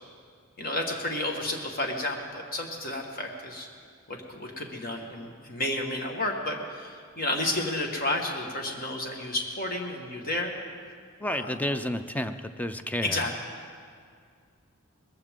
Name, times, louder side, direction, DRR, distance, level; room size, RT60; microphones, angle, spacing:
voice 1, 0.6-3.7 4.1-10.5 11.3-11.7 13.0-13.3, left 1 dB, 40° left, 2 dB, 1.7 m, -31 dB
voice 2, 11.2-13.2, left 1 dB, 5° left, 9 dB, 0.4 m, -31 dB
20.0 x 14.5 x 3.7 m, 2.1 s
head